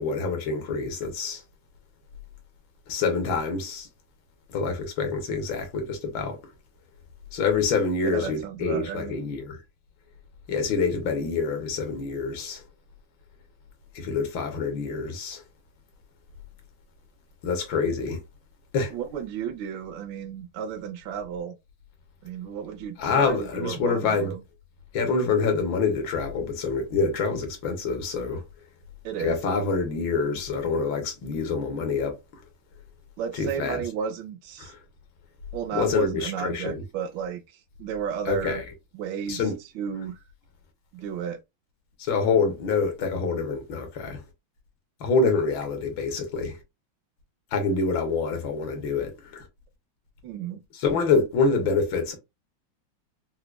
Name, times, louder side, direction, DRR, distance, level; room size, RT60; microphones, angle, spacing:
voice 1, 0.0-1.4 2.9-3.9 4.5-6.4 7.3-9.6 10.5-12.6 13.9-15.4 17.4-18.2 18.7-18.9 23.0-24.3 24.9-28.4 29.2-32.2 33.3-33.8 34.6-34.8 35.7-36.8 38.3-38.6 39.3-39.6 42.0-44.2 45.0-46.6 47.5-49.4 50.8-52.1, left 4 dB, 70° left, 1.6 m, -26 dB
voice 2, 8.0-9.2 18.9-21.6 22.2-24.4 29.0-29.4 33.2-34.7 35.5-38.6 38.9-39.5 39.7-40.2 40.9-41.4 50.2-50.6, right 8 dB, 75° right, 1.3 m, -33 dB
4.7 x 2.2 x 2.2 m
omnidirectional pair, 2.3 m